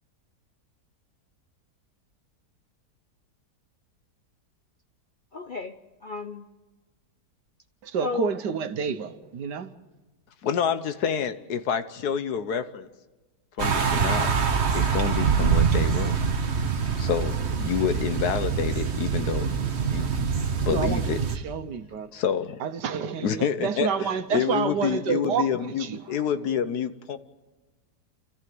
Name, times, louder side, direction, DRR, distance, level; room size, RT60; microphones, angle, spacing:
voice 1, 5.3-5.8 6.0-6.5 8.0-8.3, left 4 dB, 50° left, 0.6 m, -32 dB
voice 2, 7.8-9.7 20.7-22.1 22.6-26.2, right 7 dB, 80° right, 1.7 m, -29 dB
voice 3, 10.4-12.9 13.6-14.3 14.7-16.2 17.0-19.6 19.9-20.2 20.6-21.2 22.1-22.6 23.2-27.2, left 8 dB, 70° left, 1.5 m, -28 dB
sound 1, 13.6-21.4, right 6 dB, 45° right, 1.4 m, -25 dB
29.0 x 14.5 x 7.8 m
omnidirectional pair, 1.8 m